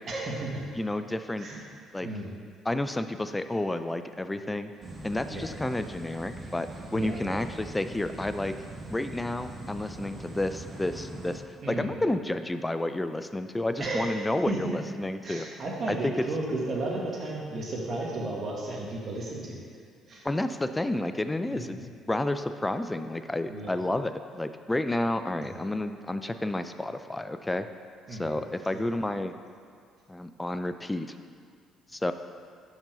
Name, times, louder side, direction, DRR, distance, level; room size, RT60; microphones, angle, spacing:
voice 1, 0.1-0.6 1.4-1.6 2.0-2.3 5.3-5.5 6.9-7.4 11.6-11.9 13.8-14.8 15.2-19.6 20.1-20.2 21.5-21.8 23.5-23.7 25.5-25.6 28.1-28.3 28.7-28.8, right 2 dB, 50° right, -2 dB, 1.5 m, -34 dB
voice 2, 0.8-1.5 1.9-2.1 2.7-4.7 5.0-8.5 8.9-11.4 11.7-15.5 15.9-16.3 20.2-21.8 22.1-27.7 28.1-29.3 30.1-31.1 31.9-32.1, left 1 dB, 15° left, 10 dB, 0.4 m, -30 dB
sound 1, 4.8-11.4, right 2 dB, 30° right, 1.2 m, -42 dB
5.3 x 4.9 x 5.1 m, 2.3 s
hypercardioid pair, 55°, 0 cm